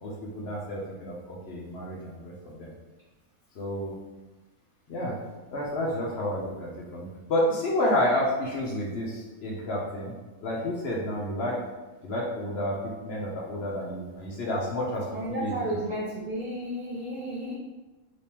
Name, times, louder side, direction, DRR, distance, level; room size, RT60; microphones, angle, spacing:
voice 1, 0.0-2.7 3.5-3.9 4.9-5.1 5.5-10.1 10.4-11.5 12.0-12.8 13.0-15.5, left 1 dB, 55° left, -3 dB, 0.8 m, -30 dB
voice 2, 15.1-17.5, right 1 dB, 60° right, -6 dB, 0.5 m, -32 dB
3.4 x 2.9 x 2.9 m, 1.2 s
omnidirectional pair, 1.5 m